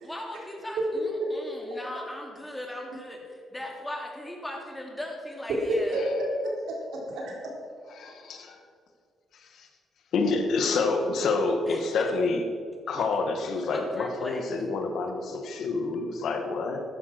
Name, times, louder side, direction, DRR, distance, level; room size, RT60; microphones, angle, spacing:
voice 1, 0.0-6.0 11.7-12.1 12.9-13.1 13.7-14.4, left 1 dB, 10° left, 0 dB, 3.2 m, -38 dB
voice 2, 5.5-7.5, right 1 dB, 75° right, -1 dB, 3.9 m, -29 dB
voice 3, 8.0-8.6 9.6-9.7 10.1-12.4 12.9-16.8, left 3 dB, 70° left, 5 dB, 1.8 m, -27 dB
13.5 x 11.0 x 6.2 m, 2.2 s
cardioid pair, 90°, 0 cm